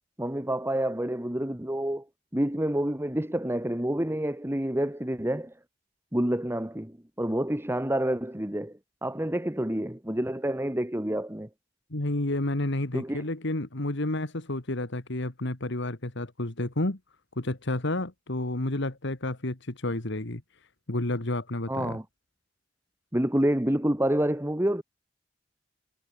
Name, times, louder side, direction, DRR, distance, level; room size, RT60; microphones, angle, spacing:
voice 1, 0.2-2.0 2.3-5.5 6.1-11.5 12.9-13.2 21.7-22.0 23.1-24.8, right 1 dB, 10° right, 1.7 m, -28 dB
voice 2, 11.9-17.0 17.4-22.0, left 1 dB, 65° left, 2.1 m, -30 dB
head